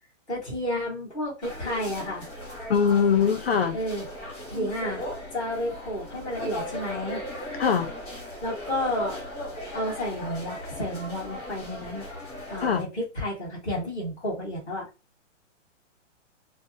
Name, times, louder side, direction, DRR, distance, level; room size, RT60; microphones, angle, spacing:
voice 1, 0.3-2.3 3.7-4.0 4.5-7.5 8.4-9.2 9.7-12.1 12.5-14.8, left 1 dB, 5° right, 0.5 m, -31 dB
sound 1, 1.4-12.8, left 1 dB, 15° left, 1.1 m, -37 dB
voice 2, 2.7-3.8 7.6-7.9 12.6-12.8, left 6 dB, 50° left, 0.5 m, -22 dB
2.6 x 2.2 x 3.0 m
hypercardioid pair, 170°, 38 cm